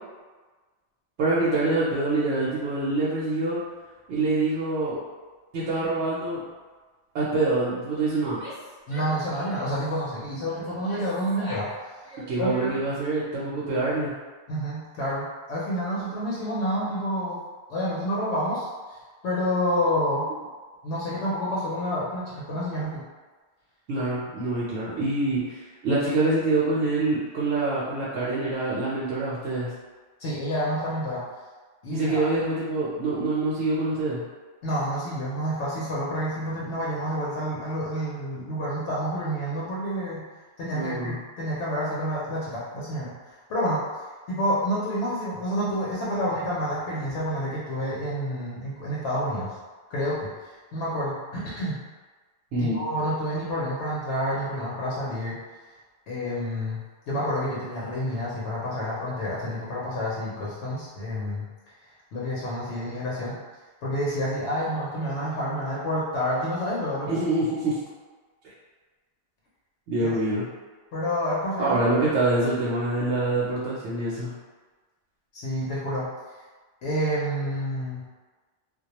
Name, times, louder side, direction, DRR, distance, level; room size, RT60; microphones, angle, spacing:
voice 1, 1.2-3.6 4.1-5.0 5.5-6.4 7.1-8.4 12.3-14.1 23.9-29.7 31.9-34.2 40.7-41.2 52.5-52.8 67.1-67.8 69.9-70.5 71.6-74.3, right 2 dB, 85° right, -8 dB, 0.9 m, -25 dB
Female speech woman speaking / Yell, 8.3-9.9 10.5-11.8 12.0-13.0, right 1 dB, 15° left, 0.9 m, -43 dB
voice 2, 8.9-12.1 12.4-12.8 14.5-17.4 17.7-20.3 20.8-23.0 30.2-31.2 31.8-32.3 34.6-40.2 40.6-43.8 44.3-49.6 49.9-51.8 52.6-55.4 56.1-61.5 62.1-63.4 63.8-67.2 70.0-70.2 70.9-71.8 75.3-76.1 76.8-78.1, equal, 85° left, -7 dB, 0.9 m, -29 dB
2.2 x 2.2 x 2.8 m, 1.4 s
omnidirectional pair, 1.1 m